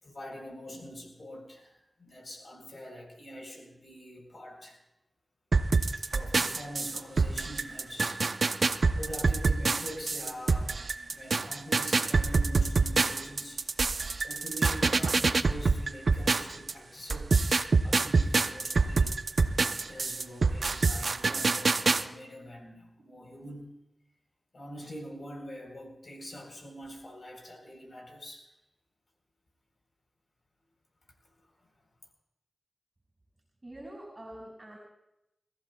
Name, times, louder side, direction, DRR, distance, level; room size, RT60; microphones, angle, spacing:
voice 1, 0.0-4.8 6.0-8.3 8.6-13.6 14.2-17.5 17.8-19.5 19.8-23.7 24.5-28.5, equal, 60° left, 2 dB, 4.1 m, -44 dB
sound 1, 5.5-16.7 17.1-22.0, right 4 dB, 70° right, 0.7 m, -26 dB
voice 2, 33.6-34.8, right 1 dB, 35° right, -1 dB, 5.2 m, -45 dB
30.0 x 14.5 x 2.4 m, 0.90 s
cardioid pair, 45°, 0 cm